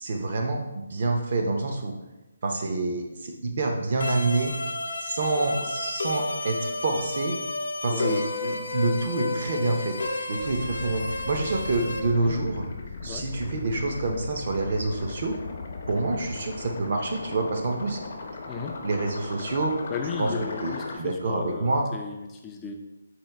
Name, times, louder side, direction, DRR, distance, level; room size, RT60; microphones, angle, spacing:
voice 1, 0.0-1.9 2.4-4.5 5.0-7.3 7.8-9.9 10.3-12.6 13.0-15.4 15.9-18.0 18.8-19.7 20.2-20.3 20.6-21.9, right 2 dB, 50° right, 2 dB, 0.7 m, -27 dB
sound 1, 4.0-12.0, left 2 dB, 90° left, 0.6 m, -32 dB
voice 2, 7.9-8.2 12.1-12.4 13.0-13.3 18.5-18.8 19.9-22.7, left 5 dB, 15° left, 3 dB, 0.3 m, -35 dB
sound 2, 10.3-21.0, left 3 dB, 50° left, 0.6 m, -37 dB
4.4 x 2.4 x 3.4 m, 1.0 s
hypercardioid pair, 170°, 0 cm